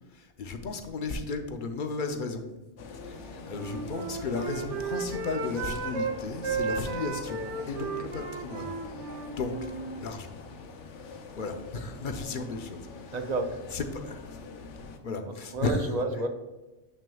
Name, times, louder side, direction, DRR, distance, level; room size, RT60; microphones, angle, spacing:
voice 1, 0.2-2.5 3.1-8.7 9.4-9.7 10.0-10.3 11.4-13.1 13.7-14.4 14.8-15.9, left 4 dB, 55° left, 6 dB, 0.7 m, -34 dB
sound 1, 2.8-15.0, left 4 dB, 90° left, 1.0 m, -44 dB
Wind instrument woodwind instrument, 3.4-6.1 6.4-10.0, right 5 dB, 85° right, 1.0 m, -34 dB
voice 2, 13.1-13.5 15.3-16.3, right 2 dB, 45° right, 5 dB, 0.6 m, -31 dB
7.4 x 6.2 x 2.3 m, 1.1 s
omnidirectional pair, 1.2 m